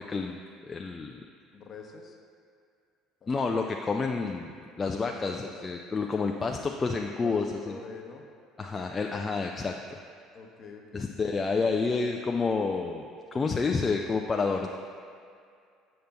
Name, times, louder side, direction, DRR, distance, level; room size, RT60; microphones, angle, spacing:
voice 1, 0.1-1.2 3.3-7.8 8.6-10.0 10.9-13.1 13.3-14.7, left 4 dB, 30° left, 2 dB, 0.3 m, -29 dB
voice 2, 1.5-2.2 3.2-3.3 5.0-5.5 7.2-8.2 10.3-11.2, left 4 dB, 45° left, 2 dB, 0.8 m, -45 dB
7.7 x 6.5 x 2.2 m, 2.3 s
hypercardioid pair, 60°, 0 cm